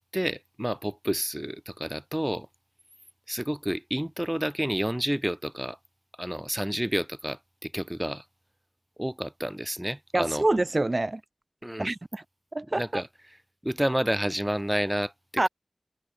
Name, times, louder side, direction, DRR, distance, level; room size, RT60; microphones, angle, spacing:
voice 1, 0.1-2.5 3.3-5.8 6.2-8.2 9.0-10.5 11.6-11.9 12.7-13.1 13.6-15.5, equal, 10° right, 4.6 m, -30 dB
voice 2, 10.1-11.2 11.8-12.2 12.5-13.0 15.4-15.5, right 2 dB, 45° right, 2.3 m, -26 dB
wide cardioid pair, 45°, 0 cm